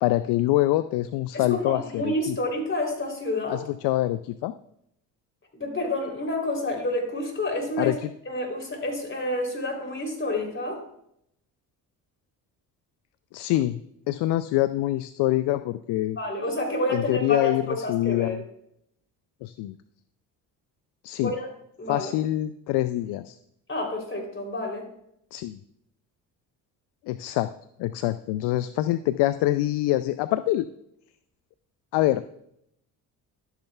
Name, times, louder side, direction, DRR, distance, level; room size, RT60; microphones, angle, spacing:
voice 1, 0.0-2.4 3.5-4.5 7.8-7.9 13.3-13.8 14.1-16.2 16.9-18.4 19.4-19.7 21.0-21.3 21.9-23.4 25.3-25.6 27.1-27.5 27.8-30.7 31.9-32.2, left 15 dB, 60° left, 13 dB, 0.5 m, -25 dB
voice 2, 1.3-3.6 5.5-8.0 8.2-10.8 16.2-18.4 21.2-21.5 21.8-22.1 23.7-24.8, left 1 dB, 25° left, 1 dB, 3.4 m, -29 dB
11.5 x 7.9 x 2.3 m, 0.75 s
hypercardioid pair, 55°, 46 cm